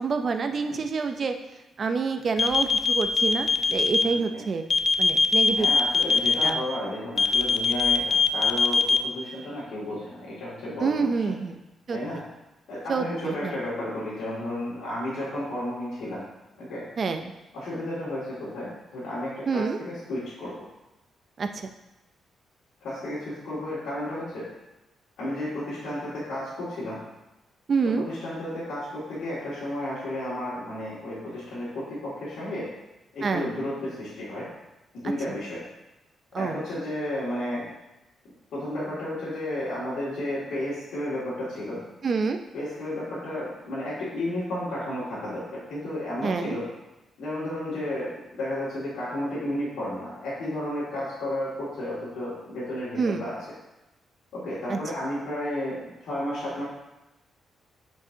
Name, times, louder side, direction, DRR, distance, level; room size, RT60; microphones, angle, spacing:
voice 1, 0.0-1.3 1.8-4.6 5.0-5.7 6.4-6.6 10.8-11.6 11.9-12.0 12.9-13.5 17.0-17.3 19.5-19.8 21.4-21.7 27.7-28.0 33.2-33.5 36.3-36.6 42.0-42.4 46.2-46.6 53.0-53.2 54.7-54.8, right 5 dB, 40° right, 6 dB, 0.6 m, -27 dB
sound 1, 2.4-4.0 4.7-6.5 7.2-9.0, left 4 dB, 40° left, 0.4 m, -21 dB
voice 2, 4.0-4.4 5.5-11.1 11.9-12.2 12.7-16.2 16.6-16.8 17.5-20.5 22.8-24.5 25.2-27.0 27.9-32.7 33.1-34.5 34.9-35.6 36.4-37.7 38.5-41.8 42.5-46.7 47.2-53.4 54.3-56.6, left 1 dB, 80° left, -11 dB, 2.3 m, -32 dB
9.7 x 4.6 x 2.8 m, 1.0 s
cardioid pair, 120°, 0 cm